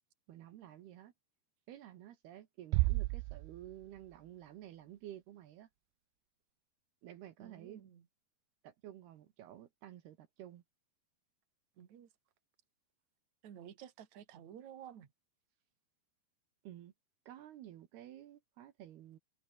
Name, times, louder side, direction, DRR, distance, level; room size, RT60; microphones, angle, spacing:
voice 1, 0.3-1.1 1.7-5.7 7.0-7.8 8.6-10.6 16.6-16.9 17.3-19.2, right 12 dB, 70° right, 3.4 m, -52 dB
Bass drum, 2.7-4.2, right 22 dB, 90° right, 2.8 m, -33 dB
voice 2, 7.4-8.1 11.8-12.1 13.4-15.1, right 9 dB, 50° right, 3.3 m, -52 dB
omnidirectional pair, 4.9 m